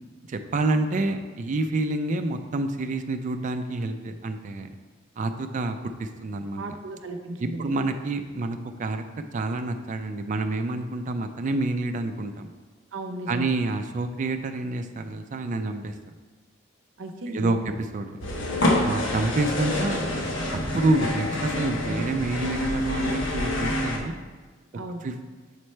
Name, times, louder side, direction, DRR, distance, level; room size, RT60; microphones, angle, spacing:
voice 1, 0.3-4.7 5.2-6.6 7.4-9.0 9.3-12.5 13.3-15.9 17.3-17.6 17.9-18.2 18.8-20.0 20.5-24.1 25.0-25.1, right 2 dB, 40° right, 7 dB, 0.4 m, -28 dB
voice 2, 6.6-7.7 12.9-13.5 17.0-17.8 24.7-25.1, right 1 dB, 80° right, 5 dB, 0.7 m, -35 dB
sound 1, 18.2-24.0, left 1 dB, 85° left, 0.9 m, -27 dB
7.3 x 3.2 x 4.4 m, 1.4 s
head